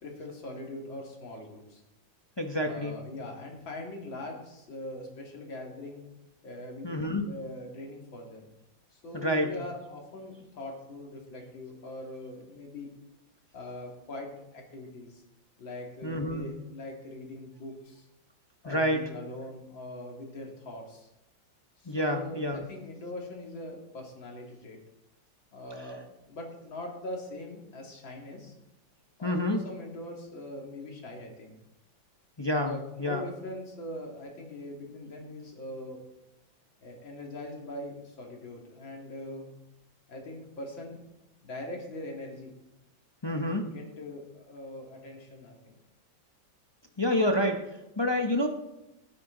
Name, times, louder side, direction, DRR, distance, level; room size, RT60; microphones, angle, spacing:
voice 1, 0.0-1.8 2.6-6.1 6.4-8.4 8.9-12.9 13.5-15.2 15.6-18.1 18.6-21.1 21.8-24.8 25.5-28.5 29.2-31.5 32.6-36.0 36.8-39.5 40.1-41.0 41.4-42.5 43.2-45.7, left 1 dB, 80° left, 0 dB, 3.2 m, -42 dB
voice 2, 2.4-3.1 6.8-7.3 9.1-9.5 16.0-16.6 18.6-19.1 21.8-22.7 25.8-25.9 29.2-29.7 32.4-33.2 43.2-43.7 47.0-48.5, left 1 dB, 25° left, 3 dB, 0.6 m, -28 dB
18.0 x 9.5 x 3.9 m, 0.92 s
omnidirectional pair, 2.1 m